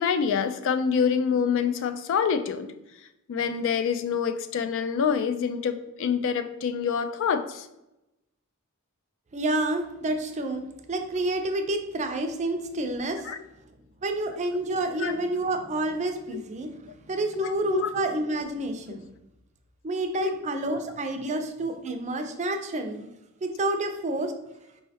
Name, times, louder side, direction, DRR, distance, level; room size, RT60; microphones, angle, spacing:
voice 1, 0.0-2.7 3.3-7.7 13.3-13.4 15.0-15.1 17.3-17.9 20.2-20.3, left 6 dB, 60° left, 9 dB, 0.3 m, -26 dB
voice 2, 9.3-13.3 14.0-16.8 17.1-19.1 19.8-23.0 23.4-24.3, right 2 dB, 35° right, 5 dB, 0.4 m, -29 dB
4.6 x 3.1 x 2.7 m, 0.90 s
head